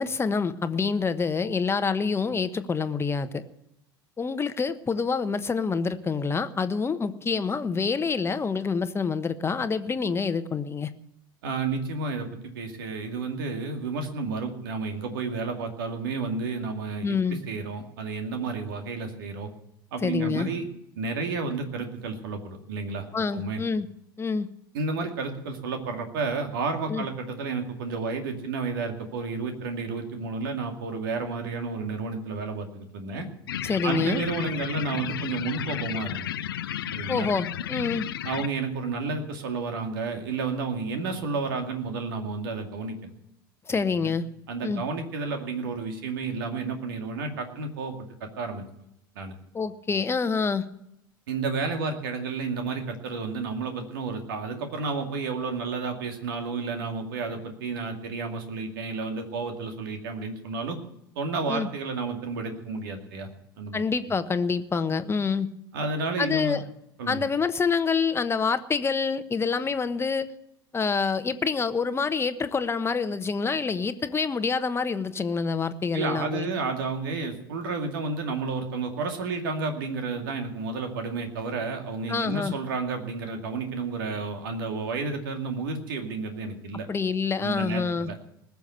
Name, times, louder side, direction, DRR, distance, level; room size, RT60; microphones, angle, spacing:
voice 1, 0.0-3.4 4.2-10.9 17.0-17.4 20.0-20.5 23.1-23.9 24.2-24.5 26.9-27.0 33.6-34.2 37.1-38.1 43.7-44.2 44.6-44.8 49.5-50.7 61.5-61.7 63.7-65.5 66.2-66.6 67.1-70.3 70.7-76.5 82.1-82.5 86.9-88.1, left 5 dB, 20° left, 11 dB, 1.1 m, -27 dB
voice 2, 11.4-12.3 12.5-19.5 19.9-20.7 21.0-23.1 23.3-23.6 24.7-33.3 33.8-36.3 36.9-37.3 38.2-43.1 44.0-44.1 44.5-48.0 48.2-48.6 49.2-49.3 51.3-60.8 61.2-63.3 63.6-63.8 65.7-66.6 67.0-67.2 75.9-86.9 87.4-88.2, right 4 dB, 70° right, 5 dB, 2.3 m, -31 dB
sound 1, 33.5-38.5, left 11 dB, 75° left, 0.6 m, -33 dB
19.5 x 7.1 x 8.1 m, 0.79 s
figure-of-eight pair, 70°, 12 cm